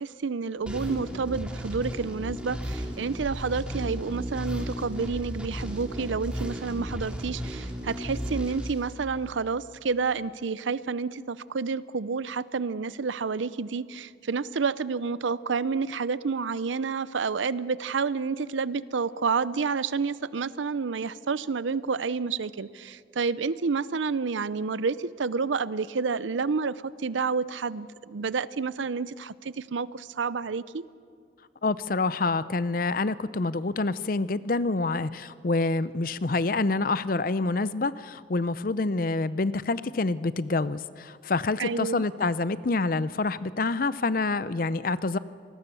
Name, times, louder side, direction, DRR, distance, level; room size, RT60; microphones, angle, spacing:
voice 1, 0.0-30.8 41.6-42.0, right 5 dB, 90° right, 17 dB, 0.6 m, -29 dB
sound 1, 0.6-9.5, equal, 5° right, 2.4 m, -35 dB
voice 2, 31.6-45.2, left 3 dB, 50° left, 16 dB, 0.6 m, -27 dB
26.5 x 19.5 x 7.0 m, 2.3 s
head